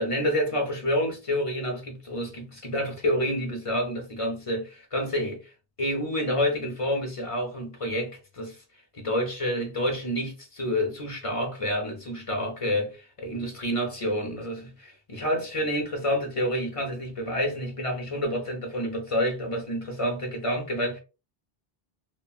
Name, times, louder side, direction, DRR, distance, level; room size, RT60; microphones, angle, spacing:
voice 1, 0.0-5.5 5.8-8.6 8.9-21.0, equal, 35° left, 0.8 m, -28 dB
3.0 x 2.2 x 2.3 m
omnidirectional pair, 1.0 m